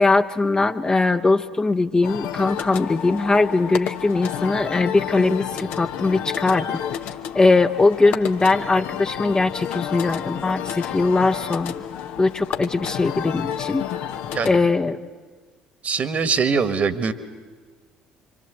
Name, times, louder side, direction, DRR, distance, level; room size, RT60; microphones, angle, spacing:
voice 1, 0.0-6.7 7.3-11.8 12.2-13.8 14.4-15.0, left 3 dB, 20° left, 6 dB, 1.0 m, -20 dB
sound 1, 2.0-14.6, left 10 dB, 55° left, 1.1 m, -31 dB
voice 2, 15.8-17.1, right 5 dB, 40° right, 12 dB, 1.7 m, -22 dB
25.5 x 25.5 x 8.0 m, 1.4 s
figure-of-eight pair, 55°, 4 cm